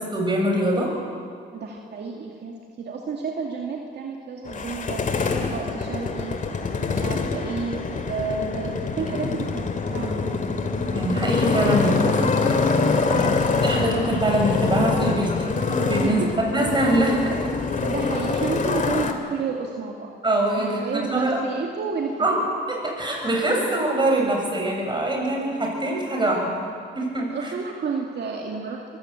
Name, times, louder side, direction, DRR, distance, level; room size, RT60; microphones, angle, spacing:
voice 1, 0.1-0.9 10.9-12.3 13.1-13.3 13.6-15.5 15.9-16.2 16.5-17.5 20.2-21.4 22.2-22.4 22.7-26.4 26.9-27.5, right 1 dB, 25° right, 0 dB, 7.3 m, -23 dB
voice 2, 1.5-5.1 5.4-6.4 6.7-10.3 13.1-13.5 16.0-16.4 17.8-20.1 20.6-22.3 25.2-25.3 26.1-26.2 27.3-29.0, right 5 dB, 60° right, 0 dB, 2.4 m, -31 dB
Motorcycle, 4.5-19.1, left 4 dB, 40° left, 2.3 m, -25 dB
23.5 x 15.5 x 8.8 m, 2.3 s
cardioid pair, 90°, 20 cm